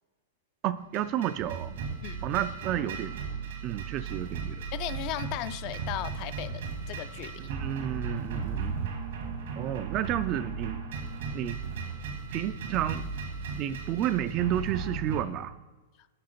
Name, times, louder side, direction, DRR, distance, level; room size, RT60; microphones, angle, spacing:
voice 1, 0.6-1.7 2.2-3.2 3.6-4.7 7.4-8.9 9.6-10.8 11.3-11.6 12.3-13.1 13.6-15.5, right 11 dB, 35° right, 13 dB, 0.3 m, -31 dB
sound 1, 0.9-15.2, right 5 dB, 75° right, 1.4 m, -36 dB
voice 2, 4.7-7.4, left 13 dB, 45° left, 12 dB, 0.4 m, -36 dB
5.8 x 5.0 x 5.1 m, 1.3 s
hypercardioid pair, 135°, 0 cm